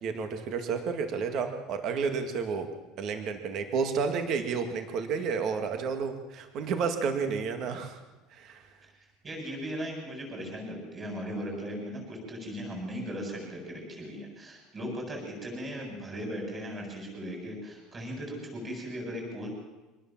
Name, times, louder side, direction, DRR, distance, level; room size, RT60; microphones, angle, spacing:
voice 1, 0.0-2.7 3.0-8.0 8.3-8.6, right 5 dB, 40° right, 7 dB, 2.1 m, -31 dB
voice 2, 9.2-19.5, equal, 20° right, 0 dB, 7.8 m, -38 dB
25.0 x 19.0 x 7.4 m, 1.1 s
cardioid pair, 175°, 0 cm